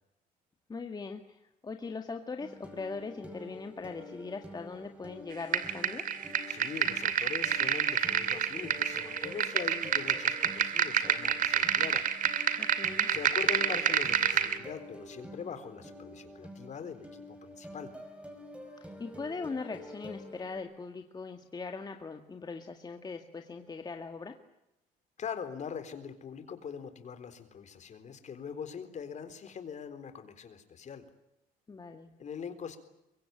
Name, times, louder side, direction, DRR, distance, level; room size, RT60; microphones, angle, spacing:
voice 1, 0.7-6.2 12.6-13.1 18.8-24.4 31.7-32.1, left 4 dB, 25° left, 5 dB, 2.0 m, -40 dB
sound 1, 2.4-20.6, equal, 5° right, 5.7 m, -48 dB
sound 2, 5.5-14.6, right 8 dB, 55° right, 2.6 m, -29 dB
voice 2, 6.5-12.1 13.1-17.9 25.2-31.1 32.2-32.8, left 7 dB, 45° left, 10 dB, 4.0 m, -42 dB
23.5 x 23.5 x 9.1 m, 0.88 s
cardioid pair, 110°, 17 cm